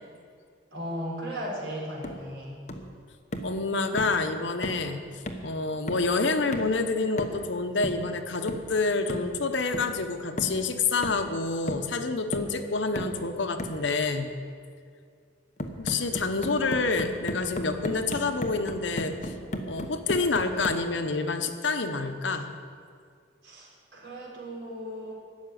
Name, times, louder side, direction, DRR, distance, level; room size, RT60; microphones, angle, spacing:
voice 1, 0.7-2.6 23.4-25.1, equal, 70° right, -3 dB, 4.4 m, -36 dB
sound 1, 2.0-2.3 2.7-2.9 3.3-3.6 4.0-4.2 4.6-4.9 5.3-5.5 5.9-6.2 6.5-6.8 7.2-7.5 7.8-8.1 8.5-8.7 9.1-9.3 9.7-10.0 10.4-10.6 11.0-11.4 11.7-11.9 12.3-12.6 13.0-13.2 13.6-13.8 15.6-20.9, left 1 dB, 35° left, 1.0 m, -35 dB
voice 2, 3.4-14.3 15.8-19.3 19.7-22.6, left 3 dB, 75° left, 7 dB, 0.9 m, -28 dB
12.5 x 7.3 x 9.2 m, 2.2 s
head